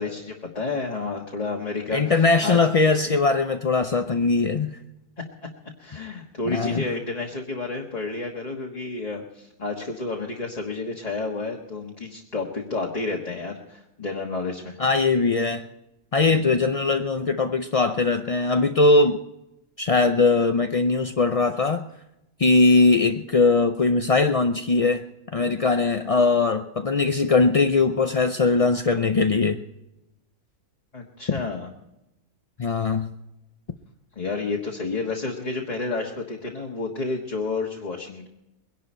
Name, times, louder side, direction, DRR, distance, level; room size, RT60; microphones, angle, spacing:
voice 1, 0.0-2.6 5.8-14.8 16.3-16.6 30.9-31.7 34.2-38.3, left 3 dB, 30° left, -1 dB, 1.6 m, -30 dB
voice 2, 1.9-4.8 6.5-6.8 14.8-15.7 16.1-19.2 19.8-21.9 22.4-25.0 25.3-29.6 31.3-31.4 32.6-33.1, left 3 dB, 50° left, 7 dB, 0.4 m, -20 dB
22.5 x 11.5 x 4.4 m, 0.89 s
omnidirectional pair, 1.5 m